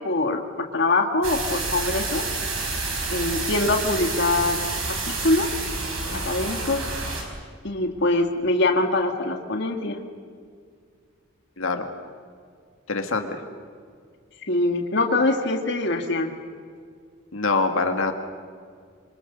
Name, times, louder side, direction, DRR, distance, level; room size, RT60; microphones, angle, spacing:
voice 1, 0.0-2.2 3.1-4.6 5.1-5.5 6.1-6.8 7.6-10.0 14.5-16.3, left 2 dB, 55° left, 3 dB, 2.0 m, -23 dB
sound 1, 1.2-7.2, right 3 dB, 90° right, 5.6 m, -29 dB
voice 2, 11.6-11.9 12.9-13.4 17.3-18.1, left 3 dB, 85° left, 5 dB, 2.0 m, -24 dB
27.0 x 24.0 x 6.8 m, 2.1 s
head